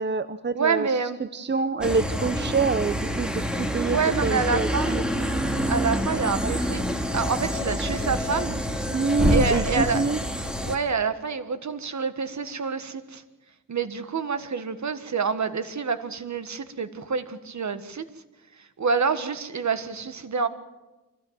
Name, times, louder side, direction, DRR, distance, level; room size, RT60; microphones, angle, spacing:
voice 1, 0.0-3.3 3.6-5.2 6.4-6.5 8.9-10.2, right 4 dB, 35° right, 12 dB, 0.7 m, -26 dB
voice 2, 0.5-1.2 3.9-4.9 5.7-6.8 7.1-8.6 9.3-10.2 10.6-13.2 13.7-18.0 18.8-20.5, right 5 dB, 55° right, 11 dB, 1.6 m, -27 dB
sound 1, 1.8-10.8, equal, ahead, 2.5 m, -27 dB
24.5 x 16.0 x 7.5 m, 1.1 s
wide cardioid pair, 85°, 33 cm